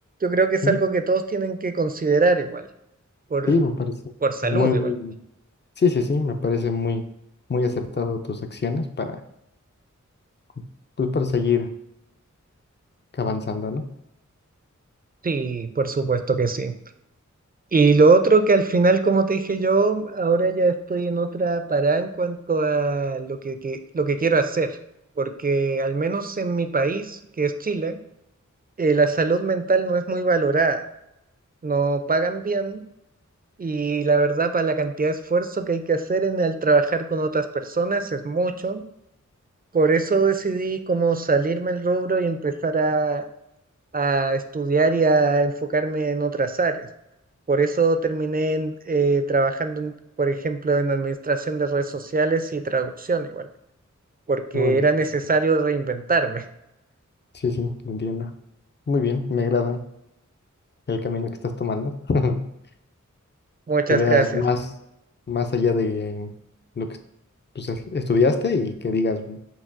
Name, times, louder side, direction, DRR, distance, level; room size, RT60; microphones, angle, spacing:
voice 1, 0.2-2.7 3.3-3.5 4.2-4.9 15.2-16.7 17.7-24.8 25.2-28.0 28.8-30.8 31.6-32.8 33.6-38.8 39.7-43.2 43.9-46.9 47.5-53.5 54.3-56.4 63.7-64.4, right 3 dB, 30° right, 8 dB, 0.3 m, -22 dB
voice 2, 3.5-4.0 4.4-5.1 5.8-7.0 7.5-9.2 10.6-10.7 11.0-11.7 13.1-13.9 54.5-54.8 57.3-58.3 58.9-59.8 60.9-62.5 63.9-64.7 65.3-66.3 66.8-67.0 67.6-69.4, left 4 dB, 35° left, 7 dB, 0.4 m, -24 dB
5.8 x 2.3 x 2.5 m, 0.82 s
wide cardioid pair, 40°, 31 cm